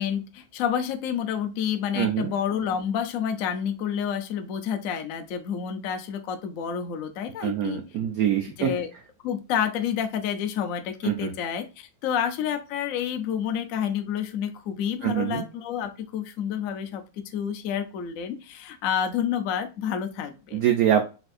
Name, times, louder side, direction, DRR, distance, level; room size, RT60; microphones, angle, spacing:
voice 1, 0.0-7.8 8.6-8.9 9.2-20.6, left 8 dB, 90° left, 7 dB, 0.7 m, -29 dB
voice 2, 1.9-2.3 7.4-8.7 11.0-11.3 15.0-15.4 20.5-21.0, right 10 dB, 90° right, 4 dB, 0.7 m, -24 dB
4.1 x 3.5 x 2.4 m, 0.31 s
omnidirectional pair, 2.1 m